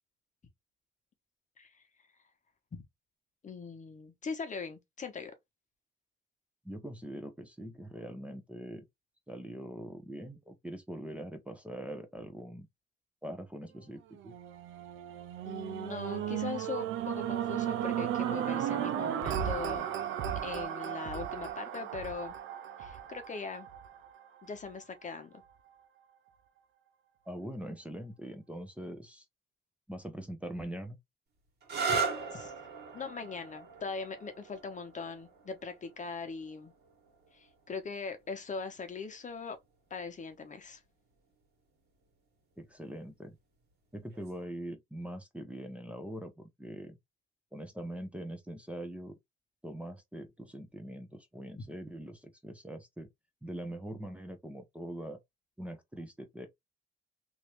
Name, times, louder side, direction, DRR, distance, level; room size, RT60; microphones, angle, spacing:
voice 1, 3.4-5.3 15.4-19.9 20.4-22.3 22.8-23.7 24.4-25.4 31.7-32.0 32.3-32.5 32.9-36.7 37.3-39.6 39.9-40.8 51.6-51.7, left 5 dB, 40° left, 0.9 m, -41 dB
voice 2, 6.6-8.8 9.3-12.7 13.2-14.3 27.3-29.2 29.9-31.0 42.6-43.4 43.9-47.0 47.5-49.1 49.6-53.1 53.4-55.2 55.6-56.5, right 1 dB, 5° right, 0.7 m, -42 dB
sound 1, 14.2-24.5 25.1-25.2, right 10 dB, 85° right, 0.6 m, -35 dB
sound 2, 31.6-39.1 40.1-40.6 44.1-44.4, right 5 dB, 55° right, 1.8 m, -39 dB
3.1 x 2.7 x 3.1 m
cardioid pair, 90°, 20 cm